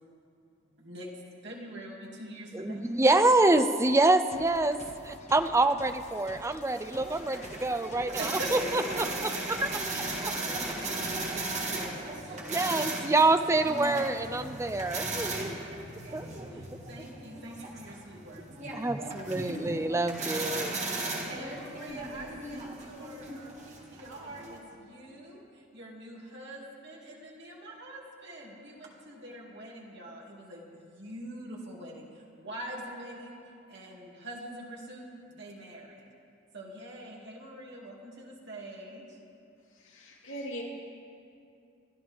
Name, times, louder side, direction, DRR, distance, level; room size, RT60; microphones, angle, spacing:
voice 1, 0.7-1.1 1.4-2.8 8.2-9.0 10.2-12.7 15.1-19.1 21.2-33.4 33.7-36.1 36.5-39.2, right 1 dB, 60° right, -2 dB, 2.4 m, -44 dB
voice 2, 2.5-10.3 12.4-15.5 16.1-16.3 16.6-16.7 18.7-20.8, right 2 dB, 15° right, 9 dB, 0.5 m, -27 dB
sound 1, 4.3-11.5, left 2 dB, 35° left, 1.2 m, -49 dB
sound 2, 6.7-24.6, right 2 dB, 35° right, 1.9 m, -37 dB
sound 3, 13.8-21.4, equal, 20° left, 3.7 m, -51 dB
voice 3, 39.7-40.6, equal, 75° left, -4 dB, 2.7 m, -40 dB
27.5 x 11.5 x 3.5 m, 2.5 s
head